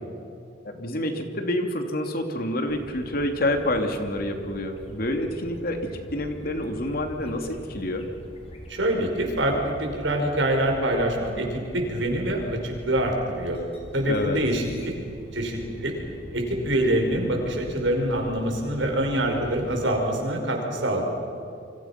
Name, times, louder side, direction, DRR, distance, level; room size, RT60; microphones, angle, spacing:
voice 1, 0.6-8.1 14.1-14.4, left 1 dB, 55° left, 5 dB, 2.8 m, -28 dB
sound 1, 2.7-19.9, equal, 35° left, 4.2 m, -43 dB
voice 2, 8.7-11.5 11.7-13.6 13.9-14.9 15.3-15.9 16.3-21.0, right 1 dB, 85° right, 2 dB, 5.5 m, -25 dB
29.0 x 25.0 x 6.0 m, 2.6 s
head